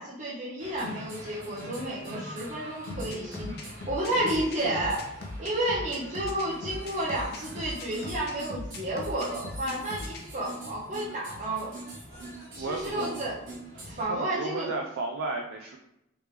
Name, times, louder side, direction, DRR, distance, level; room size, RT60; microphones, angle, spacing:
voice 1, 0.0-5.1 5.4-11.7 12.5-13.3 13.8-14.7, right 1 dB, 35° right, -7 dB, 0.8 m, -31 dB
sound 1, 0.6-14.0, right 1 dB, 70° right, 1.3 m, -43 dB
sound 2, 2.9-10.2, left 2 dB, 50° left, 0.6 m, -39 dB
voice 2, 12.6-13.2 14.0-15.8, right 3 dB, 85° right, 2 dB, 0.4 m, -33 dB
3.2 x 3.2 x 3.3 m, 0.83 s
head